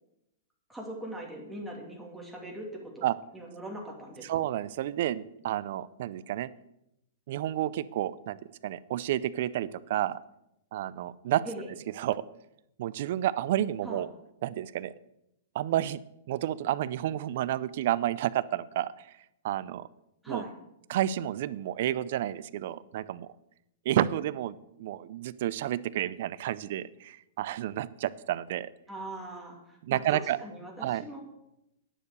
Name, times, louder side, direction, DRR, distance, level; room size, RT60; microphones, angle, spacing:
voice 1, 0.7-3.1 3.3-4.3 11.5-11.7 13.8-14.0 20.2-20.5 28.9-31.2, right 1 dB, ahead, -3 dB, 2.5 m, -41 dB
voice 2, 4.2-6.5 7.3-10.2 10.7-11.4 12.0-12.2 12.8-14.1 14.4-14.9 15.5-16.0 16.3-19.1 19.4-19.9 20.3-20.4 20.9-23.3 23.9-28.7 29.8-30.4 30.8-31.0, right 12 dB, 60° right, 18 dB, 0.5 m, -30 dB
9.9 x 6.8 x 6.6 m, 0.85 s
hypercardioid pair, 125°, 0 cm